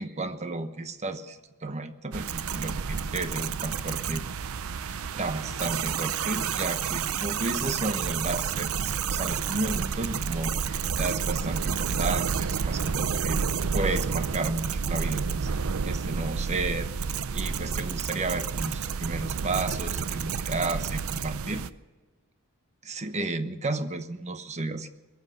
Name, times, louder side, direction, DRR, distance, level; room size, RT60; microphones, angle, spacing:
voice 1, 0.0-4.3 4.9-13.4 13.7-15.5 15.8-16.9 17.3-21.6 22.8-24.9, right 2 dB, 30° right, 10 dB, 1.0 m, -33 dB
sound 1, 2.1-21.7, right 6 dB, 65° right, 0.6 m, -30 dB
22.0 x 7.8 x 7.8 m, 1.2 s
head